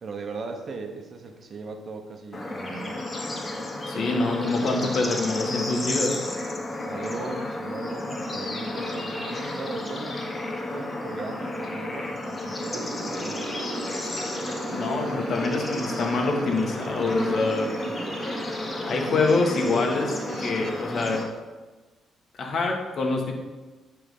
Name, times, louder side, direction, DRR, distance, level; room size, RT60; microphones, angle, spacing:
voice 1, 0.0-3.1 6.8-13.4, right 3 dB, 45° right, 5 dB, 1.0 m, -38 dB
Bird / Insect / Frog, 2.3-21.2, left 2 dB, 30° left, 1.3 m, -32 dB
voice 2, 3.9-6.2 14.7-17.7 18.9-21.3 22.4-23.3, left 3 dB, 55° left, 1 dB, 1.5 m, -25 dB
sound 1, 12.6-20.8, right 6 dB, 60° right, 0.5 m, -39 dB
9.9 x 3.6 x 5.5 m, 1.3 s
cardioid pair, 90°, 0 cm